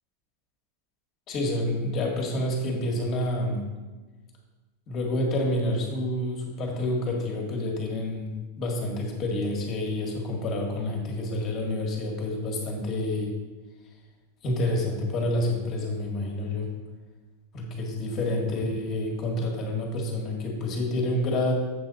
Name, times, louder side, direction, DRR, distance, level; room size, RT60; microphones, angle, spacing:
voice 1, 1.3-3.6 4.9-13.3 14.4-16.7 17.5-21.5, left 1 dB, 35° left, 0 dB, 2.0 m, -28 dB
7.8 x 6.3 x 4.1 m, 1.3 s
supercardioid pair, 145°, 0 cm